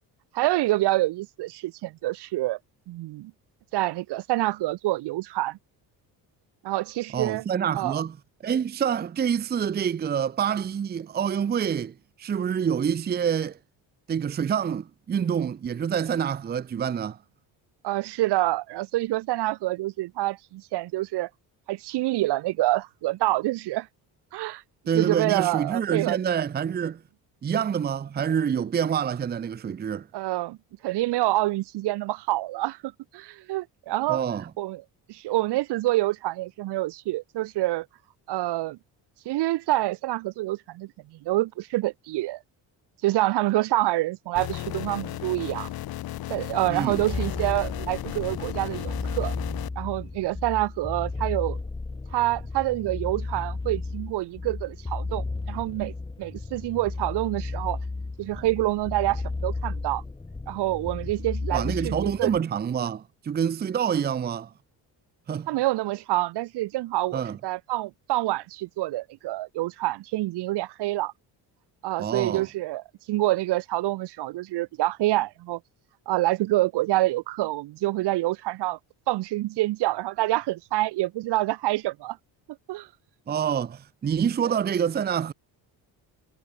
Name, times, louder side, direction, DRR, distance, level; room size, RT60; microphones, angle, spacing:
voice 1, 0.3-2.6 2.9-3.3 3.7-5.6 6.6-7.4 7.7-8.0 17.8-21.3 21.7-23.9 24.3-24.6 24.9-26.2 30.1-30.6 30.8-34.2 34.6-34.8 35.1-37.9 38.3-38.8 39.2-42.4 43.0-45.7 46.3-49.3 49.8-51.6 52.1-57.8 58.2-60.0 60.5-62.3 65.5-71.1 71.8-75.6 76.1-78.8 79.1-82.2 82.7-82.9 84.4-84.6, right 17 dB, 85° right, 2.9 m, -27 dB
voice 2, 7.1-8.2 8.4-13.6 14.1-17.2 24.9-27.0 27.4-30.1 34.1-34.5 46.7-47.0 61.5-64.5 65.3-65.5 67.1-67.4 72.0-72.5 83.3-85.3, right 8 dB, 25° right, 0.7 m, -27 dB
sound 1, 44.4-49.7, left 14 dB, 65° left, 2.6 m, -35 dB
sound 2, 46.9-62.4, left 3 dB, 10° left, 1.6 m, -34 dB
cardioid pair, 140°, 40 cm